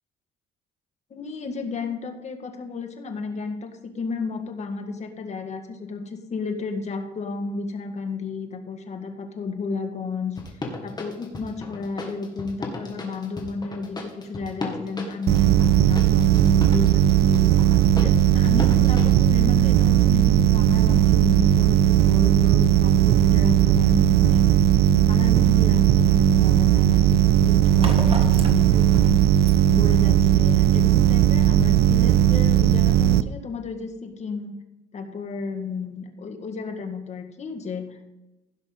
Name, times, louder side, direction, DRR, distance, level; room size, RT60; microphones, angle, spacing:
voice 1, 1.1-10.4 10.8-17.5 18.0-24.5 24.9-29.1 29.7-34.5 34.9-38.0, left 4 dB, 40° left, 5 dB, 1.8 m, -33 dB
sound 1, 10.4-19.2, left 2 dB, 25° left, 2.1 m, -35 dB
sound 2, 15.3-33.2, right 11 dB, 75° right, 0.5 m, -17 dB
sound 3, 25.7-31.0, right 1 dB, 35° right, 1.7 m, -36 dB
16.0 x 6.1 x 3.9 m, 1.0 s
cardioid pair, 110°, 17 cm